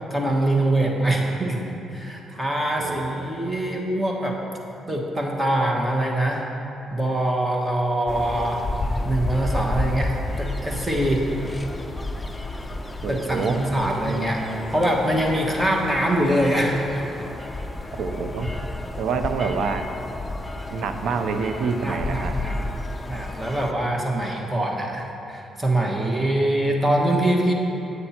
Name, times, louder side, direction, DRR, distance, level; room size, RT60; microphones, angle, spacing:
voice 1, 0.1-4.4 4.9-6.4 6.9-8.6 9.0-11.3 13.1-14.4 14.7-17.1 21.8-22.6 23.1-27.5, right 1 dB, 10° right, -1 dB, 1.4 m, -23 dB
voice 2, 2.8-3.3 13.0-13.8 18.0-18.5 19.0-19.9 20.7-22.3, right 5 dB, 75° right, 7 dB, 0.7 m, -27 dB
sound 1, 8.1-23.7, left 2 dB, 15° left, 0.6 m, -31 dB
8.8 x 8.2 x 4.4 m, 2.9 s
cardioid pair, 90°, 0 cm